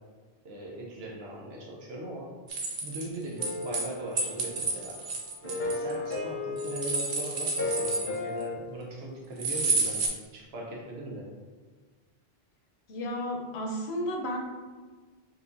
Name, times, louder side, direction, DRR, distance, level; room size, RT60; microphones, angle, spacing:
voice 1, 0.4-2.4 2.8-5.0 5.4-11.3, right 1 dB, 80° right, -2 dB, 1.1 m, -39 dB
sound 1, 2.5-3.9 4.2-6.1 6.6-8.4 9.4-10.1, right 3 dB, 55° right, 0.8 m, -30 dB
sound 2, 3.4-4.9 5.4-8.6, left 3 dB, 65° left, 1.3 m, -35 dB
voice 2, 12.9-14.4, equal, 90° left, 1 dB, 1.0 m, -32 dB
4.7 x 3.2 x 2.6 m, 1.4 s
omnidirectional pair, 1.0 m